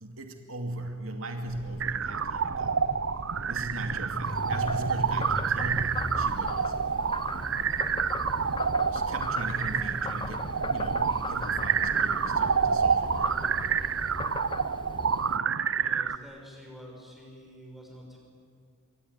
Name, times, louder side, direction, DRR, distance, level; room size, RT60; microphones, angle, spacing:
voice 1, 0.0-2.8 3.5-6.8 7.3-7.8 8.9-13.4, right 1 dB, 80° right, 4 dB, 2.5 m, -38 dB
sound 1, 1.4-14.2, equal, 50° left, 2.7 m, -46 dB
sound 2, 1.8-16.2, right 6 dB, 65° right, 0.7 m, -28 dB
Frog, 4.2-15.4, left 3 dB, 25° left, 0.6 m, -38 dB
voice 2, 15.8-18.2, equal, ahead, -1 dB, 6.6 m, -47 dB
26.5 x 23.5 x 9.4 m, 2.1 s
head